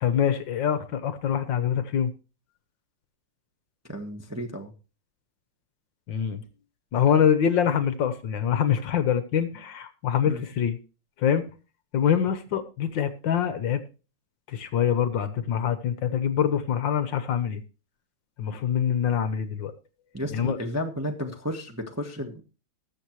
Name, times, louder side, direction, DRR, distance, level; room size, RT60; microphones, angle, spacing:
voice 1, 0.0-2.1 6.1-6.4 6.9-10.8 11.2-11.4 11.9-13.8 14.5-17.6 18.4-19.7 20.3-20.6, left 8 dB, 65° left, 11 dB, 1.6 m, -24 dB
voice 2, 3.9-4.7 10.2-10.5 20.1-22.4, equal, 10° right, 2 dB, 0.9 m, -33 dB
20.5 x 7.4 x 3.1 m, 0.33 s
omnidirectional pair, 2.4 m